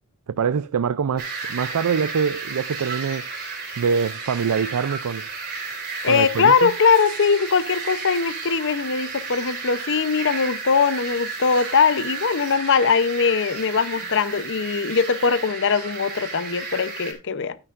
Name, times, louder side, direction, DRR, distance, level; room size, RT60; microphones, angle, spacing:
voice 1, 0.3-3.3 3.8-5.3 6.0-6.7, right 6 dB, 85° right, 0.4 m, -24 dB
sound 1, 1.2-17.1, right 4 dB, 45° right, 3.8 m, -33 dB
voice 2, 6.0-17.6, left 5 dB, 55° left, 0.7 m, -21 dB
12.0 x 9.7 x 2.5 m
head